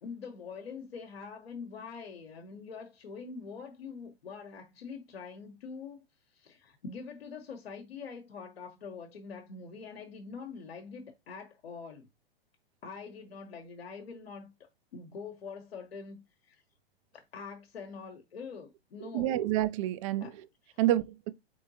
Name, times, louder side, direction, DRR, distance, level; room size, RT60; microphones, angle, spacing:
voice 1, 0.0-12.1 12.8-16.6 17.1-19.5 20.2-20.8, left 5 dB, 70° left, 1.1 m, -45 dB
voice 2, 19.1-20.2 20.8-21.3, right 13 dB, 35° right, 0.4 m, -28 dB
4.4 x 3.5 x 2.8 m
figure-of-eight pair, 115°, 31 cm